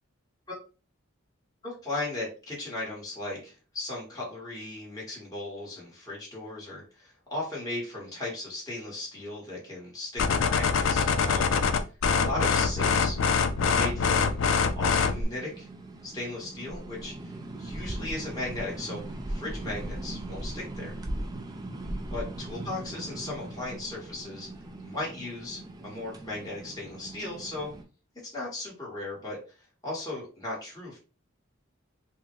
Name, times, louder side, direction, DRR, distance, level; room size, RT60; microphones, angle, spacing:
voice 1, 1.6-11.5 12.1-13.2 13.6-14.4 14.7-15.7 16.0-17.3 17.6-19.0 19.3-20.9 22.1-24.5 24.8-27.7 28.2-29.4 29.8-31.0, left 2 dB, 15° left, -5 dB, 1.2 m, -36 dB
sound 1, 10.2-15.2, left 5 dB, 65° left, 0.4 m, -24 dB
sound 2, 12.6-27.8, right 1 dB, 20° right, 0.3 m, -39 dB
3.7 x 2.1 x 3.0 m, 0.34 s
head